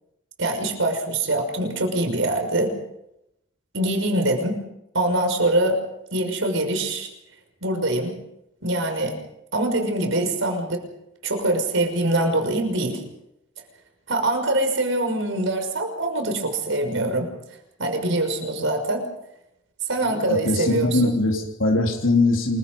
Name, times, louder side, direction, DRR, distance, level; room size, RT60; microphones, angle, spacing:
voice 1, 0.4-2.7 3.7-4.6 4.9-5.8 6.1-7.1 7.6-8.1 8.6-9.2 9.5-10.8 11.2-13.0 14.1-17.3 17.8-19.1 19.9-21.0, right 1 dB, 75° right, 5 dB, 6.0 m, -23 dB
voice 2, 20.0-22.6, left 2 dB, 80° left, 0 dB, 3.4 m, -21 dB
27.5 x 23.0 x 5.5 m, 0.85 s
head